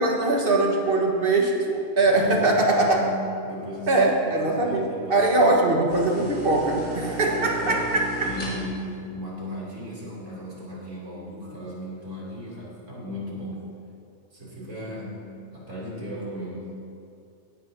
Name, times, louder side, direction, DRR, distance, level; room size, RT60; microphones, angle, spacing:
voice 1, 0.0-3.0 3.9-8.3, right 2 dB, 45° right, 0 dB, 1.6 m, -22 dB
voice 2, 2.0-3.1 3.4-5.6 7.1-7.9 8.2-13.6 14.3-15.2 15.5-16.7, left 1 dB, 70° right, -6 dB, 3.4 m, -35 dB
sound 1, 5.9-8.9, equal, 50° left, 3.6 m, -35 dB
18.5 x 11.0 x 2.8 m, 2.5 s
omnidirectional pair, 1.4 m